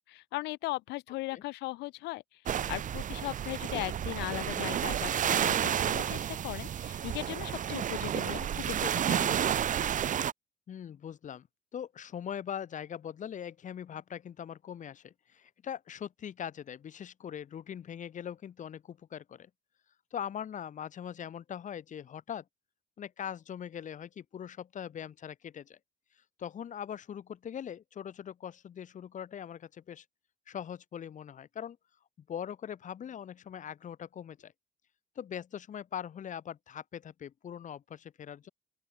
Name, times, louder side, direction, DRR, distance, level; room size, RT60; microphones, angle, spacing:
voice 1, 0.1-9.4, left 20 dB, 90° left, 4.4 m, -38 dB
sound 1, 2.5-10.3, right 9 dB, 50° right, 2.0 m, -31 dB
voice 2, 10.7-11.5 11.7-19.5 20.1-22.4 23.0-25.8 26.4-30.0 30.5-31.8 32.3-34.5 35.2-38.5, left 9 dB, 50° left, 4.3 m, -41 dB
open air
cardioid pair, 110°, 17 cm